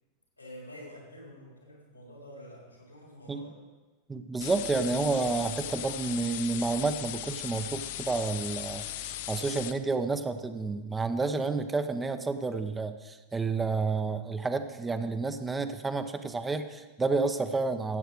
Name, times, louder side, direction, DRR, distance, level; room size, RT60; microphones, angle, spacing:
voice 1, 0.4-3.6, equal, 85° left, -2 dB, 3.8 m, -48 dB
voice 2, 4.1-18.0, right 3 dB, 15° right, 9 dB, 0.7 m, -30 dB
sound 1, 4.4-9.7, left 13 dB, 50° left, 0.5 m, -38 dB
15.5 x 7.8 x 4.7 m, 1.2 s
figure-of-eight pair, 90°, 0 cm